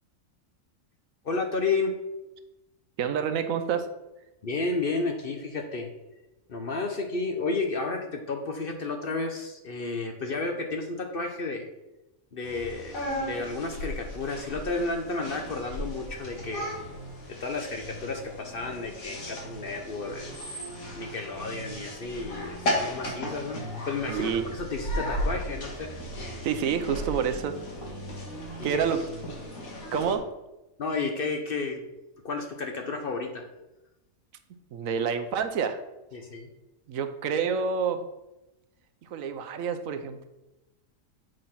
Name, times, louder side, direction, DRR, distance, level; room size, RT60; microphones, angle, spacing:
voice 1, 1.2-1.9 4.4-5.9 6.5-11.7 12.3-16.7 17.4-20.6 21.0-25.9 26.4-26.5 28.7-28.8 30.8-31.8 32.2-33.4 36.1-36.5, left 3 dB, 50° left, 4 dB, 0.8 m, -32 dB
voice 2, 3.0-3.9 24.1-24.4 26.4-27.6 28.6-29.0 29.9-30.3 34.7-35.8 36.9-38.1 39.0-40.3, right 7 dB, 75° right, 8 dB, 1.1 m, -28 dB
sound 1, 12.4-30.2, equal, 75° left, 2.1 m, -36 dB
7.7 x 3.9 x 5.7 m, 0.98 s
omnidirectional pair, 1.5 m